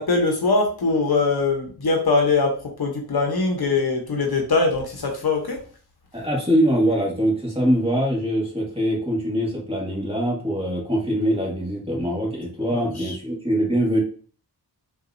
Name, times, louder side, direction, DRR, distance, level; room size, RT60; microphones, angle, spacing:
voice 1, 0.0-5.6 12.7-13.2, left 3 dB, 65° left, 2 dB, 0.9 m, -22 dB
voice 2, 6.1-14.0, equal, 15° right, -4 dB, 1.6 m, -23 dB
3.9 x 2.5 x 2.5 m, 0.41 s
wide cardioid pair, 80°, 41 cm